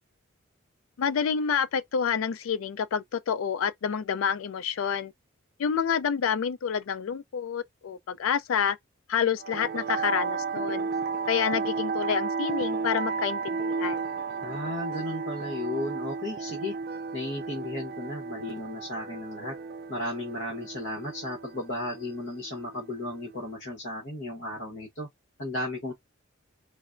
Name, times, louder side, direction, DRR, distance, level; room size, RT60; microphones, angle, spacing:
voice 1, 1.0-5.1 5.6-8.8 9.1-10.9 11.3-14.0, left 7 dB, 85° left, 0.4 m, -28 dB
sound 1, 9.4-23.5, right 4 dB, 45° right, 0.3 m, -33 dB
voice 2, 14.4-16.7 17.1-19.5 19.9-25.1 25.4-25.9, left 1 dB, 65° left, 1.2 m, -34 dB
3.9 x 2.1 x 2.5 m
head